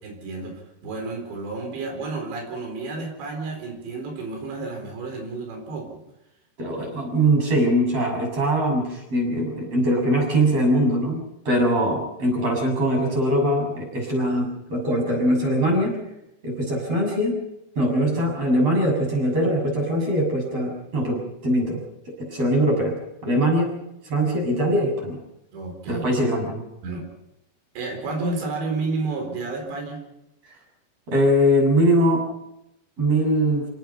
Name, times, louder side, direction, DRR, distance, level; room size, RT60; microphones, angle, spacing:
voice 1, 0.0-6.0 25.5-26.0 26.8-27.1 27.8-30.0, right 3 dB, 90° right, 3 dB, 6.4 m, -31 dB
voice 2, 6.6-16.0 16.4-17.4 17.8-23.8 24.1-25.2 25.9-26.6 31.1-32.2 33.0-33.7, equal, 35° right, 1 dB, 7.6 m, -22 dB
27.0 x 18.5 x 5.8 m, 0.85 s
omnidirectional pair, 5.0 m